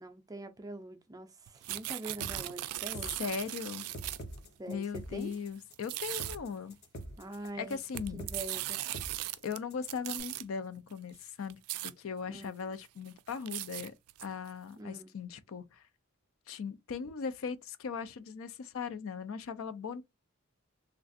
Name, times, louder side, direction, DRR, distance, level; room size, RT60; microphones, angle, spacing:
voice 1, 0.0-3.2 4.6-4.8 5.1-5.3 7.2-7.8 8.1-8.8 12.3-12.6 14.8-15.1, right 2 dB, 15° right, 0.4 m, -44 dB
sound 1, 1.5-4.4 5.2-5.3 5.7-6.4 7.5-9.6 9.8-10.4 11.1-11.2 11.5-11.9 12.4-12.5 12.8-14.5, right 16 dB, 85° right, 0.3 m, -38 dB
sound 2, 2.2-10.2, right 1 dB, 45° left, 1.0 m, -45 dB
voice 2, 3.2-3.8 4.7-6.8 7.6-8.2 9.4-13.9 14.2-15.8 16.5-20.0, left 6 dB, 65° left, 0.4 m, -39 dB
3.3 x 2.4 x 2.5 m
head